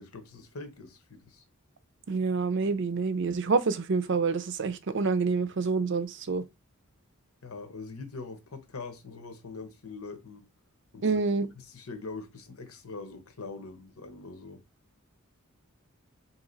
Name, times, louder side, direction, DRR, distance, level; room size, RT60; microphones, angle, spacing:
voice 1, 0.0-1.4 7.4-10.5 10.9-11.2 11.6-14.6, left 3 dB, 90° left, 1.0 m, -43 dB
voice 2, 2.1-6.4 11.0-11.5, right 4 dB, 55° right, 0.5 m, -27 dB
4.0 x 2.9 x 3.9 m
head